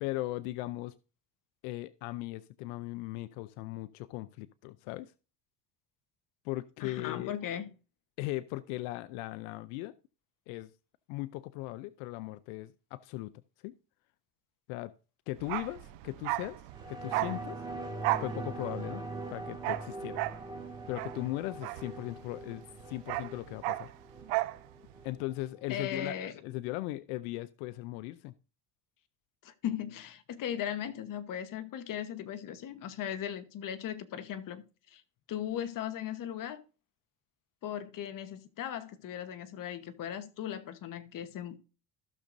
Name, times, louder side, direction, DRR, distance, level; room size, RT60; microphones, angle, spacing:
voice 1, 0.0-0.9 1.6-5.1 6.4-7.4 8.2-10.0 10.5-10.7 11.1-13.3 13.6-13.8 14.7-14.9 15.3-16.6 16.9-17.6 18.2-19.0 19.3-20.2 20.9-23.9 25.0-26.2 26.4-28.3, left 18 dB, 90° left, 0.6 m, -38 dB
voice 2, 6.8-7.7 25.7-26.3 29.4-35.0 35.3-36.6 37.6-41.6, left 10 dB, 50° left, 1.1 m, -38 dB
Bark, 15.4-22.4 22.7-24.6 24.9-25.0, right 19 dB, 85° right, 0.8 m, -35 dB
sound 1, 16.7-25.7 26.1-26.2, right 2 dB, 10° right, 1.9 m, -42 dB
15.5 x 6.4 x 2.6 m
cardioid pair, 110°, 42 cm